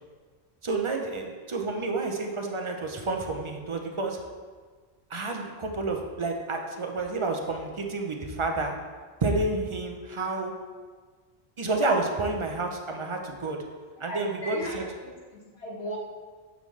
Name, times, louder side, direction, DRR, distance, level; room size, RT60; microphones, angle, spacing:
voice 1, 0.6-4.2 5.1-8.7 9.2-10.5 11.6-13.6 14.0-14.8, right 3 dB, 40° right, 2 dB, 0.5 m, -29 dB
voice 2, 14.0-16.0, equal, 75° left, -5 dB, 1.7 m, -37 dB
6.9 x 5.4 x 3.1 m, 1.5 s
omnidirectional pair, 1.1 m